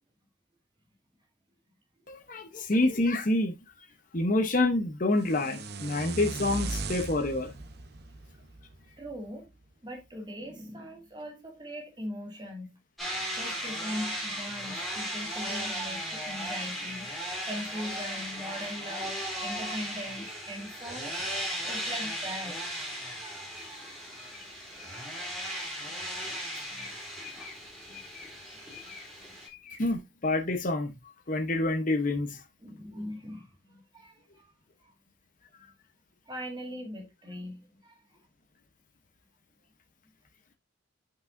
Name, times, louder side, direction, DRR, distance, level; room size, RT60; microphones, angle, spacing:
voice 1, 2.1-3.9 4.1-7.6 23.5-23.7 24.2-24.4 24.9-25.0 25.3-25.7 26.0-27.0 27.2-27.6 27.9-29.1 29.5-30.9 31.3-32.4, left 2 dB, 40° left, 0.9 m, -29 dB
sound 1, 5.2-9.3, right 3 dB, 50° right, 0.8 m, -38 dB
voice 2, 9.0-9.5 9.8-12.8 13.3-17.1 17.4-21.2 21.7-23.2 24.8-24.9 26.7-26.9 27.8-28.0 28.8-29.3 32.6-34.5 34.8-34.9 36.3-38.2, equal, 20° right, 2.0 m, -41 dB
sound 2, 13.0-29.5, equal, ahead, 3.3 m, -36 dB
8.7 x 5.7 x 2.6 m
head